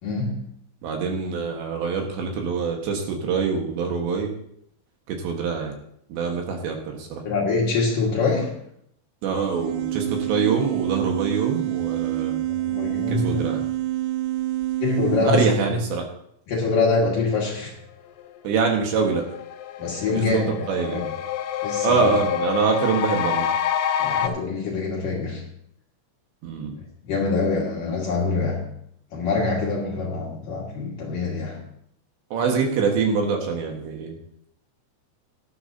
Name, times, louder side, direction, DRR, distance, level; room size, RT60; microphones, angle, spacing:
voice 1, 0.0-0.5 7.2-8.6 12.5-13.4 14.8-15.8 16.5-17.8 19.8-21.0 21.6-22.1 24.0-25.4 27.0-28.7 29.1-31.6, left 3 dB, 55° left, -3 dB, 2.7 m, -25 dB
voice 2, 0.8-4.3 5.1-5.8 6.1-7.2 9.2-12.4 13.2-13.6 15.2-16.1 18.4-19.2 20.1-21.1 21.8-23.5 26.4-26.8 32.3-34.1, right 5 dB, 70° right, 2 dB, 3.4 m, -24 dB
sound 1, 9.4-15.3, right 15 dB, 85° right, 3.1 m, -27 dB
sound 2, 18.5-18.6 18.9-24.3, left 9 dB, 80° left, 2.4 m, -27 dB
18.0 x 12.0 x 2.8 m, 0.71 s
omnidirectional pair, 5.7 m